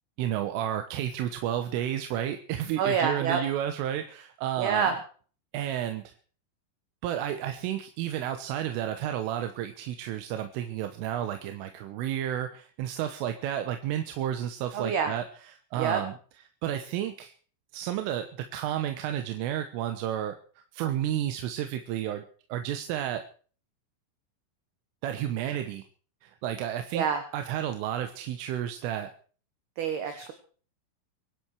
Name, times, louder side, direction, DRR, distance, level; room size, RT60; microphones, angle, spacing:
voice 1, 0.2-4.9 5.5-6.2 7.0-16.1 16.6-17.3 17.7-22.2 22.5-23.2 25.0-25.8 26.2-27.1 27.3-29.1 30.1-30.2, right 11 dB, 85° right, 7 dB, 3.7 m, -31 dB
voice 2, 2.8-3.4 4.6-4.9 14.7-15.1 15.8-16.0 26.9-27.2 29.8-30.3, right 7 dB, 60° right, 7 dB, 3.2 m, -27 dB
24.0 x 11.5 x 4.7 m, 0.42 s
omnidirectional pair, 5.7 m